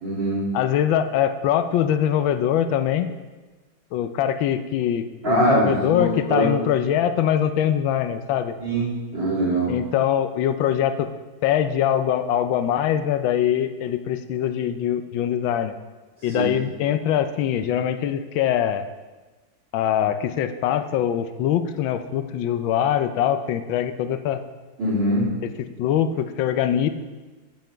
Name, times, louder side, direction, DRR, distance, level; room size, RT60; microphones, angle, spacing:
voice 1, 0.0-0.5 5.2-6.5 8.6-9.7 16.3-16.5 24.8-25.3, right 1 dB, 65° right, -10 dB, 4.1 m, -22 dB
voice 2, 0.5-3.1 3.9-8.5 9.7-11.1 11.4-15.7 16.2-18.8 19.7-24.4 25.8-26.9, left 10 dB, 85° left, 10 dB, 1.3 m, -23 dB
7.8 x 7.3 x 4.4 m, 1.2 s
omnidirectional pair, 2.1 m